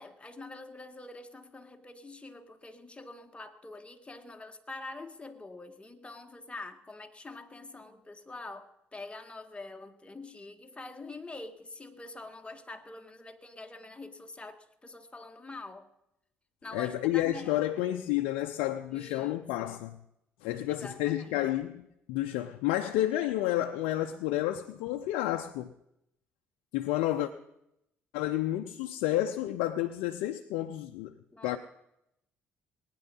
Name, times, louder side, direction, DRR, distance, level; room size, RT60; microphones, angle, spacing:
voice 1, 0.0-15.9 16.6-17.7 18.9-19.8 20.7-21.4 31.3-31.6, left 2 dB, 20° left, 1.9 m, -45 dB
voice 2, 16.7-20.0 20.4-25.7 26.7-27.3 28.1-31.1 31.4-31.6, left 14 dB, 80° left, 0.6 m, -30 dB
19.5 x 10.0 x 5.5 m
hypercardioid pair, 55°, 6 cm